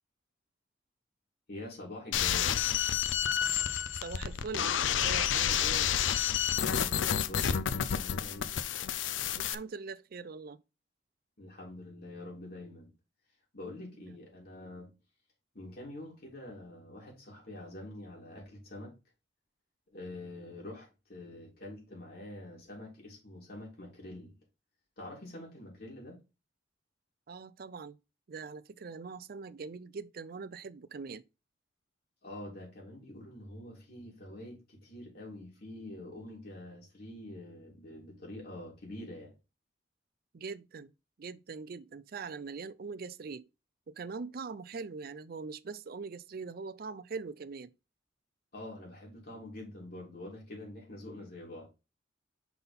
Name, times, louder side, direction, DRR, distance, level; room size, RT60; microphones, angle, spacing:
voice 1, 1.5-2.6 6.4-8.5 11.4-12.9 13.5-14.9 15.5-18.9 19.9-24.3 25.0-26.2 32.2-39.3 48.5-51.7, left 1 dB, 55° left, 3.7 m, -46 dB
sound 1, 2.1-9.6, left 9 dB, 85° left, 0.5 m, -30 dB
voice 2, 4.0-5.9 9.4-10.6 14.0-14.1 27.3-28.0 28.3-31.2 40.3-40.9 41.2-43.5 43.9-47.7, right 4 dB, 55° right, 0.5 m, -42 dB
5.9 x 4.0 x 5.2 m
head